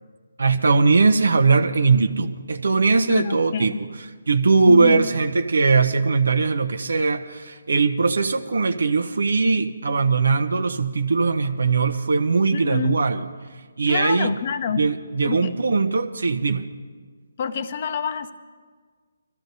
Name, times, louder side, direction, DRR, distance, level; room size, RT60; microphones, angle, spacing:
voice 1, 0.4-3.9 4.3-13.2 13.8-14.3 14.8-16.7, right 4 dB, 75° right, 7 dB, 0.7 m, -20 dB
voice 2, 3.1-3.8 4.7-5.0 12.5-13.0 13.9-14.9 15.2-15.5 17.4-18.3, left 7 dB, 40° left, 12 dB, 0.7 m, -27 dB
23.0 x 14.0 x 2.7 m, 1.5 s
hypercardioid pair, 155°, 0 cm